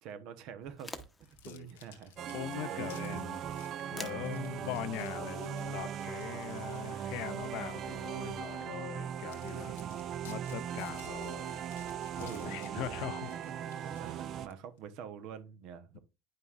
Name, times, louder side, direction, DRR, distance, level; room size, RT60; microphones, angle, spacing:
voice 1, 0.0-0.9 1.4-2.1 2.7-2.9 4.0-4.3 9.5-10.0 12.2-13.0 13.6-16.0, right 8 dB, 60° right, 1.0 m, -46 dB
sound 1, 0.6-7.0, left 2 dB, 10° left, 1.0 m, -52 dB
sound 2, 1.2-7.7 8.2-8.4 8.9-9.0 9.3-14.8, left 9 dB, 90° left, 1.2 m, -58 dB
sound 3, 2.2-14.5, right 9 dB, 45° right, 0.5 m, -39 dB
voice 2, 2.3-3.4 3.9-9.7 10.3-11.7 12.2-13.4, left 13 dB, 65° left, 0.5 m, -41 dB
9.6 x 5.3 x 2.5 m
supercardioid pair, 100°, 0 cm